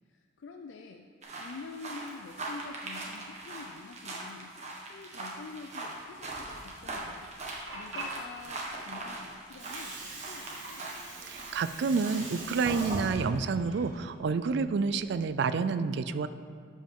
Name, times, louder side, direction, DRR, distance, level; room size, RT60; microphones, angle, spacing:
voice 1, 0.1-1.1 1.4-4.5 4.8-10.9, left 3 dB, 70° left, 4 dB, 0.4 m, -47 dB
sound 1, 1.2-11.0 11.3-13.2, right 2 dB, 40° right, 1.4 m, -40 dB
Water, 7.3-15.3, right 3 dB, 80° right, 1.6 m, -44 dB
voice 2, 11.3-16.3, right 4 dB, 65° right, 13 dB, 0.4 m, -29 dB
12.0 x 5.3 x 3.7 m, 2.2 s
head